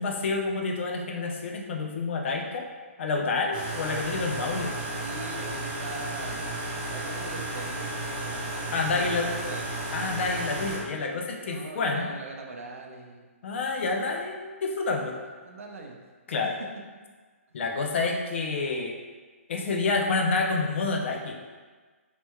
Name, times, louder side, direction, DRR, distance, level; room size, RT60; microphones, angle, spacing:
voice 1, 0.0-2.7 3.0-4.7 8.7-9.3 9.9-12.1 13.4-15.2 16.3-16.5 17.5-19.0 19.5-21.4, left 3 dB, 55° left, 2 dB, 0.5 m, -28 dB
sound 1, 3.5-10.8, right 1 dB, 35° right, 0.7 m, -33 dB
voice 2, 5.0-9.7 11.4-13.3 13.9-14.0 15.0-15.2 15.4-16.0, right 3 dB, 70° right, 1 dB, 0.5 m, -42 dB
3.3 x 2.9 x 2.2 m, 1.4 s
hypercardioid pair, 140°, 8 cm